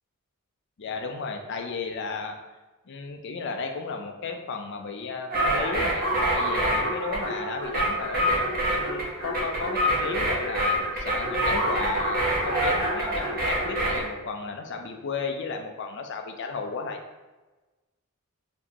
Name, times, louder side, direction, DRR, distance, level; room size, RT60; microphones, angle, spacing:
voice 1, 0.8-2.4 2.9-6.0 6.3-17.0, left 4 dB, 55° left, 4 dB, 0.5 m, -34 dB
sound 1, 5.3-14.0, right 1 dB, 45° right, 1.0 m, -26 dB
4.4 x 2.7 x 2.9 m, 1.2 s
head